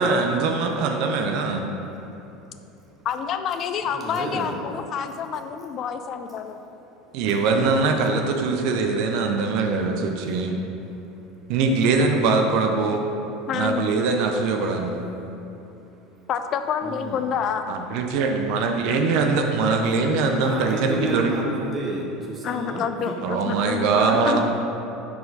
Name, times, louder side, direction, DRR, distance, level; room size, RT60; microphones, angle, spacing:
voice 1, 0.0-1.7 7.1-10.5 11.5-13.0 13.5-15.0 17.7-21.3 23.2-24.4, right 4 dB, 60° right, 3 dB, 0.5 m, -22 dB
voice 2, 2.0-3.1 3.8-4.6 6.4-6.6 7.0-7.3 10.3-10.4 10.8-11.5 15.4-16.3 16.8-17.3 19.9-20.0 20.4-23.2, right 1 dB, 25° right, -3 dB, 1.1 m, -33 dB
voice 3, 3.0-6.6 13.5-13.8 16.3-17.7 20.1-20.4 22.4-24.4, left 7 dB, 45° left, 8 dB, 0.4 m, -28 dB
4.4 x 4.2 x 5.2 m, 2.9 s
hypercardioid pair, 75°, 0 cm